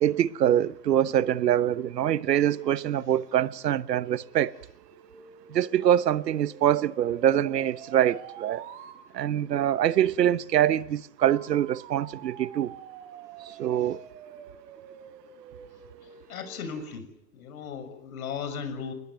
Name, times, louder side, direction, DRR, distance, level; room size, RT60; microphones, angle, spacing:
voice 1, 0.0-4.6 5.5-8.7 9.1-12.7 13.4-14.0, right 11 dB, 80° right, 1.1 m, -24 dB
sound 1, 3.8-9.0 11.2-17.0, right 8 dB, 45° right, 4.6 m, -47 dB
voice 2, 16.3-18.9, left 6 dB, 60° left, 6.5 m, -36 dB
29.0 x 20.5 x 9.3 m
hypercardioid pair, 150°, 48 cm